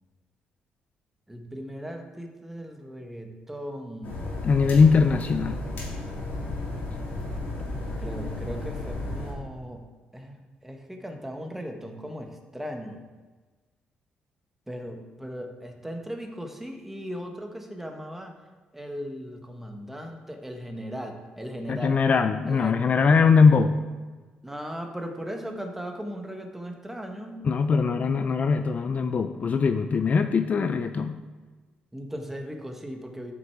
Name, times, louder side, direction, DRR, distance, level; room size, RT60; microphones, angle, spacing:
voice 1, 1.3-4.3 8.0-9.8 10.1-13.0 14.7-18.3 18.7-22.0 22.5-22.9 24.4-27.5 31.9-33.3, equal, 10° right, 3 dB, 1.3 m, -37 dB
sound 1, 4.0-9.3, left 2 dB, 70° left, 2.7 m, -33 dB
voice 2, 4.4-5.6 21.7-23.8 27.4-31.2, left 5 dB, 45° left, 9 dB, 0.4 m, -21 dB
8.0 x 5.9 x 4.8 m, 1.3 s
cardioid pair, 75°, 3 cm